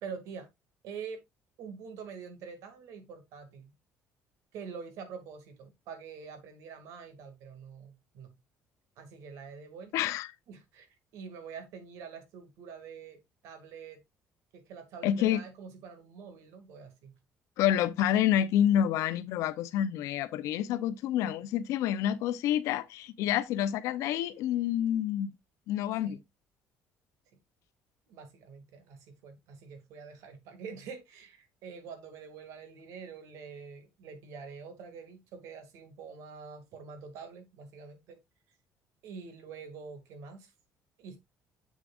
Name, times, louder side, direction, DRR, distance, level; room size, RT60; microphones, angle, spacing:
voice 1, 0.0-0.5 0.8-1.2 1.6-3.7 4.5-8.3 9.0-9.9 10.5-14.0 14.5-17.2 26.0-26.2 28.1-38.2 39.0-40.5 41.0-41.2, right 6 dB, 75° right, 2.2 m, -46 dB
voice 2, 9.9-10.3 15.0-15.4 17.6-25.3 25.7-26.2, left 10 dB, 75° left, 0.7 m, -28 dB
7.4 x 7.1 x 2.5 m
cardioid pair, 140°, 5 cm